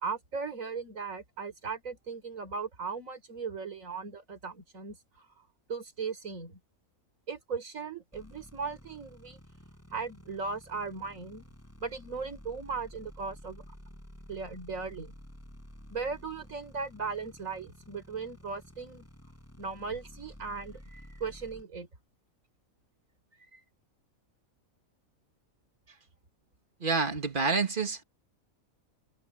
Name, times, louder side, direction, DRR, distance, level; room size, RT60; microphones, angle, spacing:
voice 1, 0.0-5.0 5.7-6.6 7.3-9.4 9.9-11.4 11.8-13.6 14.3-15.1 15.9-19.1 19.6-21.9 23.5-23.6, right 5 dB, 65° right, 4.1 m, -37 dB
sound 1, 8.1-21.6, equal, 10° left, 4.9 m, -51 dB
voice 2, 26.8-28.0, right 4 dB, 35° right, 2.0 m, -28 dB
omnidirectional pair, 1.5 m